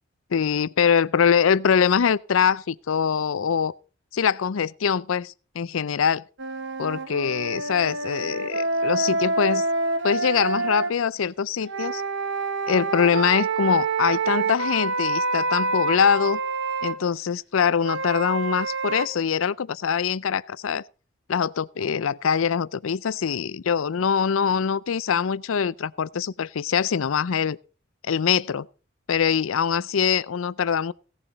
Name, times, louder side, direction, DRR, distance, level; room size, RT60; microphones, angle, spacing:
voice 1, 0.3-3.7 4.1-6.2 6.8-9.7 10.0-12.0 12.7-16.4 16.8-20.8 21.3-27.6 28.1-28.7 29.1-30.9, left 7 dB, 80° left, 0.5 m, -23 dB
sound 1, 6.4-10.9 11.6-17.0 17.8-19.1, right 3 dB, 65° right, 1.4 m, -27 dB
17.0 x 7.0 x 5.2 m
head